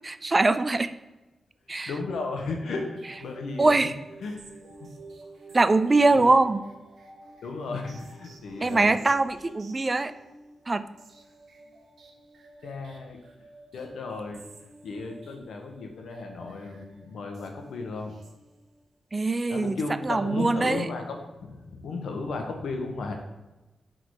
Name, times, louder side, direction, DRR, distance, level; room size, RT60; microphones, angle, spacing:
voice 1, 0.0-0.9 1.7-1.9 3.6-3.9 5.5-6.6 8.6-10.1 10.7-10.8 19.1-19.8 20.1-20.9, right 3 dB, 30° right, 12 dB, 0.3 m, -22 dB
voice 2, 1.7-3.9 4.2-4.7 6.1-6.3 7.4-8.9 12.6-13.2 13.7-14.4 14.8-18.1 19.5-23.1, left 3 dB, 90° left, 3 dB, 1.1 m, -35 dB
sound 1, 2.5-18.9, right 2 dB, 75° right, 0.9 m, -50 dB
6.3 x 3.8 x 4.7 m, 1.1 s
wide cardioid pair, 105°, 0 cm